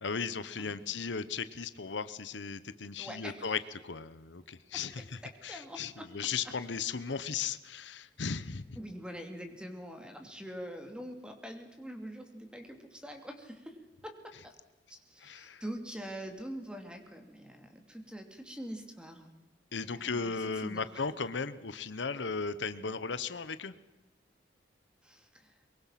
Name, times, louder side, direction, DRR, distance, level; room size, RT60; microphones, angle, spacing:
voice 1, 0.0-8.8 15.2-15.6 19.7-23.7, left 5 dB, 75° left, 14 dB, 0.9 m, -36 dB
voice 2, 3.0-3.6 5.2-6.1 8.8-13.8 14.0-14.6 14.9-19.3 19.8-20.3 20.6-20.9 25.0-25.6, equal, 5° right, 4 dB, 2.8 m, -44 dB
23.0 x 22.5 x 5.9 m, 1.1 s
head